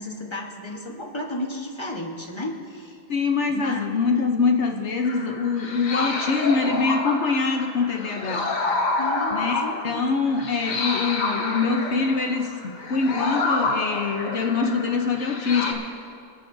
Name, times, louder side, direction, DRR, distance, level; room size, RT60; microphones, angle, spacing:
voice 1, 0.0-3.0 3.5-3.9 9.0-10.1, left 1 dB, 20° left, 1 dB, 0.9 m, -33 dB
voice 2, 3.1-8.5 9.3-15.9, left 4 dB, 65° left, 3 dB, 0.7 m, -24 dB
sound 1, 5.0-15.7, left 3 dB, 50° left, 1.3 m, -28 dB
28.5 x 9.6 x 2.7 m, 2.3 s
omnidirectional pair, 2.2 m